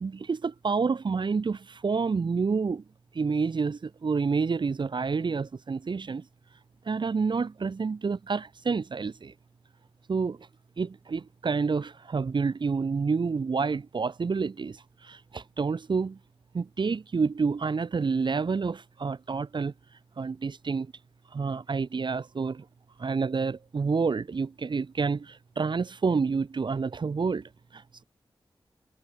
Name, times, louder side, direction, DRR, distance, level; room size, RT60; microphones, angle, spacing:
voice 1, 0.0-2.8 3.1-6.2 6.9-9.3 10.1-10.5 10.8-16.2 16.5-19.7 20.2-20.9 21.3-22.6 23.0-28.0, right 5 dB, 65° right, 0.8 m, -29 dB
cardioid pair, 50°, 9 cm